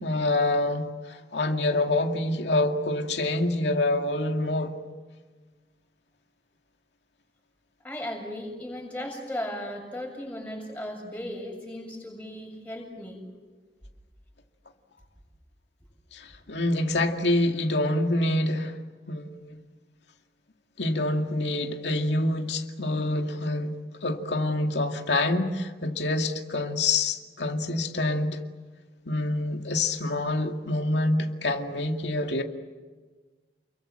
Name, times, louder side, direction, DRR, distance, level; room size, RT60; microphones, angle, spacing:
voice 1, 0.0-4.8 16.1-18.8 19.1-19.6 20.8-28.4 29.1-32.4, left 2 dB, 90° left, 2.2 m, -26 dB
voice 2, 7.8-13.2, left 1 dB, 10° left, 7.2 m, -36 dB
30.0 x 23.0 x 7.8 m
head